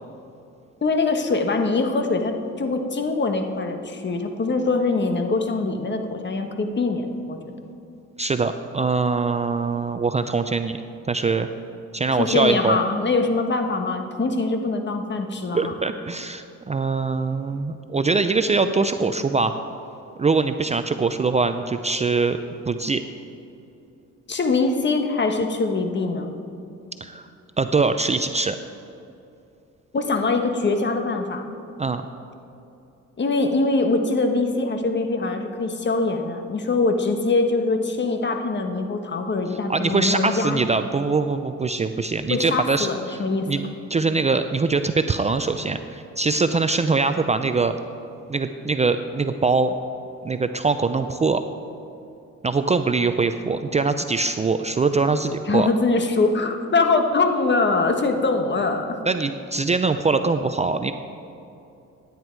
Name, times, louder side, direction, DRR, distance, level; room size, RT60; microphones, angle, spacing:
voice 1, 0.8-7.5 12.2-15.7 24.3-26.3 29.9-31.5 33.2-40.6 42.3-43.5 55.5-59.0, left 3 dB, 35° left, 5 dB, 1.4 m, -23 dB
voice 2, 8.2-10.8 11.1-11.5 11.9-12.8 15.5-19.5 20.2-22.4 22.7-23.0 27.0-27.3 27.6-28.6 31.8-32.1 39.7-43.2 43.5-43.6 43.9-47.8 48.3-49.7 50.2-51.4 52.4-55.7 59.1-60.9, right 4 dB, 20° right, 9 dB, 0.5 m, -22 dB
16.0 x 9.9 x 4.6 m, 2.6 s
cardioid pair, 90°, 30 cm